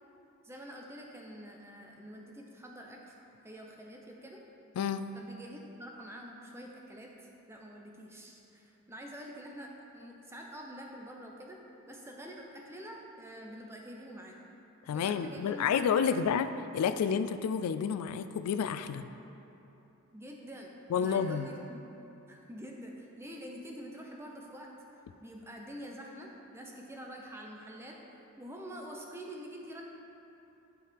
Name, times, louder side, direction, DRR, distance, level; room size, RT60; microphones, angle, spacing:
voice 1, 0.4-3.1 3.4-4.4 5.1-11.6 11.9-14.4 14.9-15.9 20.1-21.9 22.3-24.7 25.2-28.0 28.4-29.8, equal, 10° right, 0 dB, 0.6 m, -46 dB
voice 2, 4.8-5.1 14.9-16.5 16.7-19.1 20.9-21.5, left 7 dB, 85° left, 13 dB, 0.3 m, -30 dB
10.5 x 4.7 x 3.4 m, 2.9 s
head